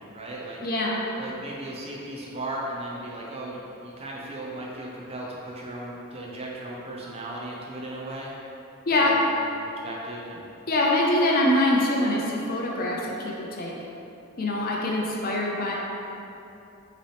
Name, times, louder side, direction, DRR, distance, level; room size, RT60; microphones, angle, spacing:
voice 1, 0.0-0.6 1.2-8.3 8.9-9.4 9.8-10.4, right 1 dB, 25° right, -4 dB, 0.5 m, -36 dB
voice 2, 0.6-1.0 8.9-9.1 10.7-13.7 14.4-15.7, left 1 dB, 40° left, -2 dB, 0.5 m, -24 dB
5.2 x 3.0 x 3.3 m, 2.9 s
head